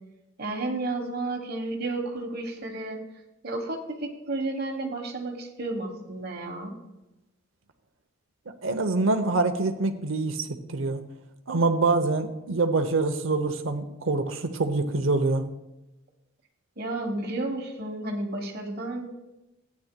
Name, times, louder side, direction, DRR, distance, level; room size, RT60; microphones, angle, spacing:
voice 1, 0.4-3.0 3.4-6.7 16.8-19.1, right 2 dB, 50° right, 3 dB, 1.3 m, -32 dB
voice 2, 8.6-11.0 11.5-15.4, right 3 dB, 75° right, 7 dB, 0.8 m, -25 dB
14.5 x 9.3 x 2.2 m, 0.96 s
head